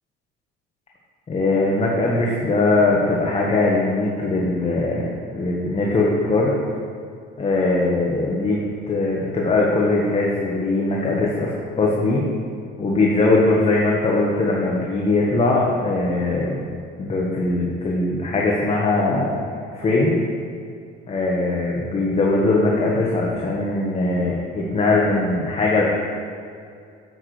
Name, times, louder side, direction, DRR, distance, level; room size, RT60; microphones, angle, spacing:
voice 1, 1.3-6.5 7.4-8.6 8.9-12.2 12.8-16.6 17.0-19.3 19.7-20.2 21.1-25.8, left 2 dB, 30° left, -3 dB, 1.6 m, -20 dB
11.0 x 8.8 x 3.4 m, 2.4 s
supercardioid pair, 95°, 21 cm